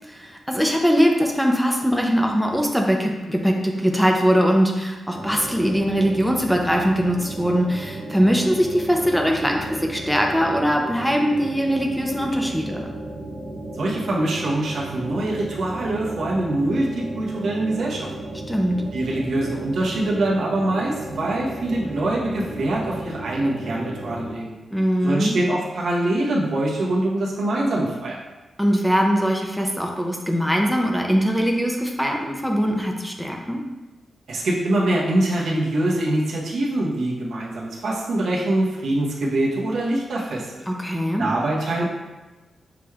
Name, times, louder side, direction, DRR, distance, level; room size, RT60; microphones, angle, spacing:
voice 1, 0.2-12.9 18.5-18.8 24.7-25.4 28.6-33.6 40.7-41.3, equal, ahead, 1 dB, 0.4 m, -21 dB
sound 1, 5.1-24.3, right 1 dB, 30° right, 0.8 m, -34 dB
voice 2, 13.7-18.1 18.9-24.6 25.0-28.2 34.3-40.5 41.2-41.8, right 1 dB, 80° right, -4 dB, 0.9 m, -24 dB
5.9 x 3.1 x 2.3 m, 1.1 s
wide cardioid pair, 140°, 0 cm